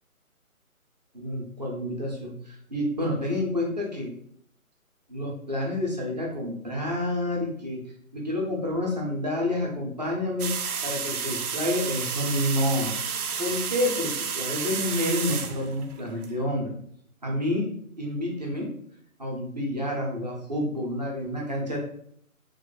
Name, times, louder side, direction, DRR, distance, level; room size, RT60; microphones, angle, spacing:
voice 1, 1.1-4.1 5.1-7.8 8.1-10.6 10.8-13.0 13.4-16.7 17.2-17.7 18.0-18.7 19.2-21.8, left 1 dB, 30° right, -2 dB, 0.6 m, -29 dB
sound 1, 10.4-16.3, right 6 dB, 85° right, 0.6 m, -31 dB
3.0 x 2.5 x 3.8 m, 0.65 s
hypercardioid pair, 160°, 43 cm